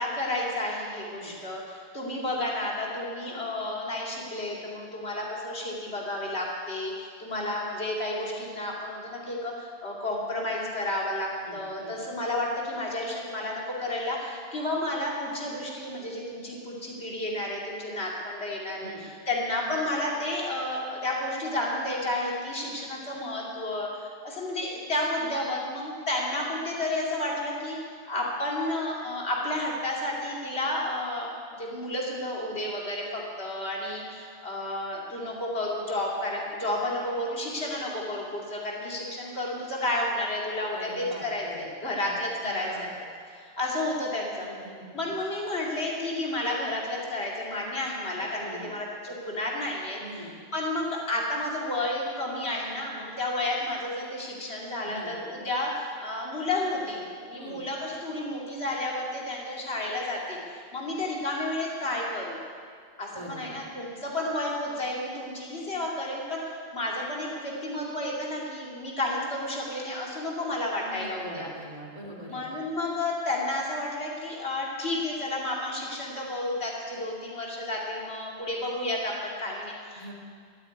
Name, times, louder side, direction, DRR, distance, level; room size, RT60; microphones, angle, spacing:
voice 1, 0.0-27.8 28.1-42.9 43.3-44.5 44.9-62.4 63.0-71.5 72.3-80.1, left 1 dB, 90° left, -3 dB, 2.9 m, -31 dB
voice 2, 11.4-12.0 18.8-19.0 40.7-41.7 42.0-42.1 42.4-42.9 44.4-45.1 48.4-48.7 50.0-50.3 54.8-55.1 57.4-57.6 63.1-63.6 70.8-72.5 79.9-80.1, right 1 dB, 35° right, -2 dB, 2.4 m, -42 dB
12.5 x 9.5 x 9.3 m, 2.1 s
omnidirectional pair, 1.0 m